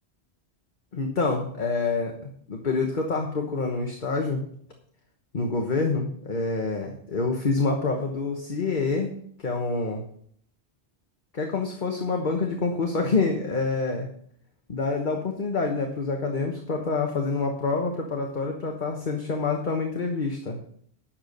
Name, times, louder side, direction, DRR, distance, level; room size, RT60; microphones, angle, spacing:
voice 1, 0.9-4.4 5.3-10.0 11.3-14.1 14.7-20.6, left 3 dB, 45° left, 2 dB, 1.3 m, -27 dB
10.5 x 7.0 x 6.5 m, 0.64 s
omnidirectional pair, 1.1 m